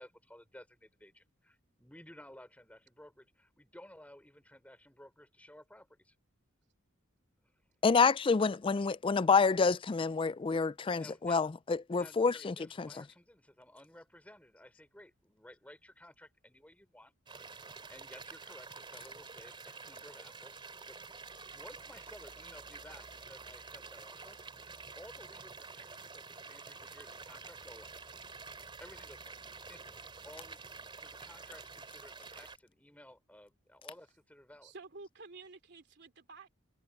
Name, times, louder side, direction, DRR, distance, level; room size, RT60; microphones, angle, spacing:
voice 1, 0.0-6.1 7.4-7.5 10.9-11.6 11.9-17.1 17.9-21.0 21.5-28.0 28.8-29.4 29.7-30.6 31.0-34.7, left 1 dB, 5° left, 4.8 m, -56 dB
voice 2, 7.8-12.9, left 5 dB, 25° left, 0.3 m, -28 dB
sound 1, 17.3-32.6, right 4 dB, 25° right, 2.8 m, -49 dB
voice 3, 34.6-36.5, right 3 dB, 55° right, 3.1 m, -51 dB
head